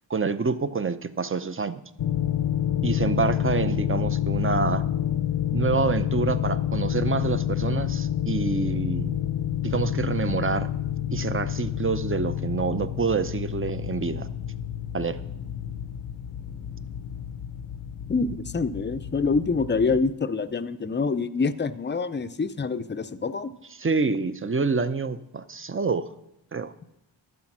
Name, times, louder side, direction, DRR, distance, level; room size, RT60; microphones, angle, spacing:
voice 1, 0.1-1.8 2.8-4.8 5.5-9.1 9.6-10.7 11.1-14.3 14.9-15.2 23.8-26.1 26.5-26.7, right 4 dB, 25° right, 13 dB, 0.6 m, -27 dB
sound 1, 2.0-20.1, left 11 dB, 70° left, 0.7 m, -29 dB
voice 2, 18.1-23.5, left 4 dB, 25° left, 11 dB, 0.6 m, -26 dB
12.0 x 7.6 x 6.0 m, 0.86 s
cardioid pair, 60°, 49 cm